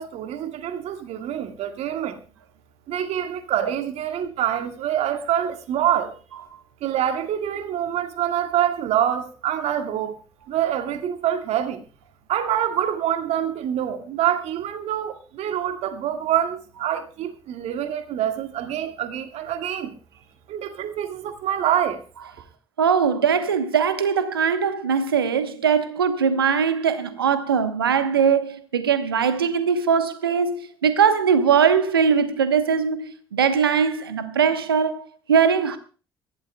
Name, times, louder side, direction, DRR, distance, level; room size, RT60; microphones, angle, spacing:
voice 1, 0.0-2.2 2.9-6.1 6.8-10.1 10.5-11.8 12.3-19.9 20.5-22.0, right 10 dB, 65° right, 1.8 m, -26 dB
voice 2, 22.8-35.8, right 6 dB, 90° right, 1.0 m, -21 dB
23.0 x 15.0 x 2.3 m
hypercardioid pair, 45°, 12 cm